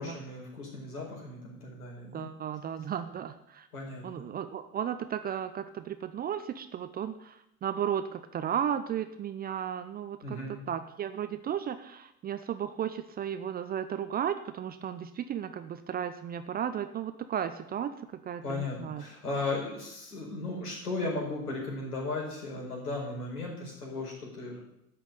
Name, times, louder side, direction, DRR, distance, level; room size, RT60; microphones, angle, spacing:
voice 1, 0.0-2.3 3.7-4.2 10.2-10.6 18.4-24.6, left 3 dB, 75° left, -2 dB, 5.1 m, -36 dB
voice 2, 2.1-3.7 4.0-17.9 18.2-19.0, right 9 dB, 20° right, 10 dB, 0.6 m, -34 dB
12.0 x 6.2 x 8.9 m, 0.79 s
figure-of-eight pair, 80°, 46 cm